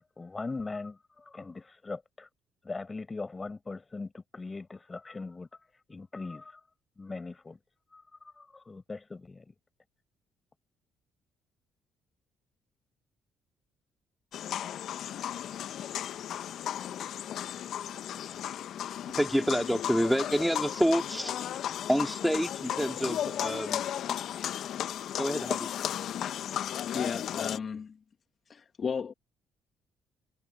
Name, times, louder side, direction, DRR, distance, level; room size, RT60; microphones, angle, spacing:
voice 1, 0.0-2.3 2.6-5.5 5.9-6.6 7.0-7.6 7.9-9.5, left 3 dB, 30° left, 7.5 m, -40 dB
sound 1, 14.3-27.6, left 10 dB, 65° left, 1.4 m, -35 dB
voice 2, 19.1-21.3 21.9-23.8 25.2-25.7, equal, ahead, 3.7 m, -28 dB
voice 3, 26.5-28.0 28.5-29.1, left 6 dB, 45° left, 2.3 m, -35 dB
hypercardioid pair, 50°, 0 cm